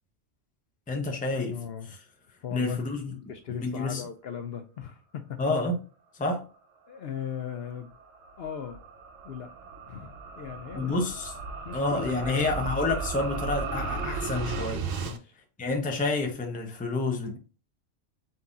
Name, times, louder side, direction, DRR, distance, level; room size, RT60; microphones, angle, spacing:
voice 1, 0.9-1.6 1.9-2.0 2.5-3.1 3.5-4.0 5.4-5.8 6.1-6.5 10.7-11.3 11.7-14.9 15.6-17.4, left 3 dB, 10° left, 0.5 m, -29 dB
voice 2, 1.5-2.0 2.4-2.8 3.1-5.4 6.9-8.0 8.4-8.8 9.2-9.5 9.9-11.0 11.6-12.5 15.0-15.3, left 8 dB, 65° left, 0.7 m, -38 dB
sound 1, 7.3-15.2, right 4 dB, 80° right, 1.1 m, -35 dB
4.0 x 2.8 x 3.5 m
omnidirectional pair, 1.3 m